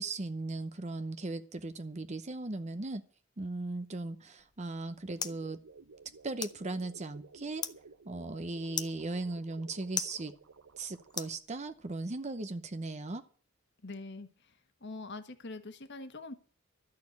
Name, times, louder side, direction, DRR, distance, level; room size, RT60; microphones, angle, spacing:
voice 1, 0.0-3.0 3.4-5.6 6.2-7.6 8.1-10.3 10.8-13.2, right 2 dB, 35° right, 10 dB, 0.8 m, -37 dB
sound 1, 4.4-11.9, left 6 dB, 20° left, 0.7 m, -44 dB
sound 2, 5.2-11.4, right 4 dB, 70° right, 0.8 m, -55 dB
voice 2, 13.8-14.5 14.8-16.3, left 3 dB, 55° left, 8 dB, 1.4 m, -44 dB
13.0 x 6.7 x 9.6 m, 0.42 s
head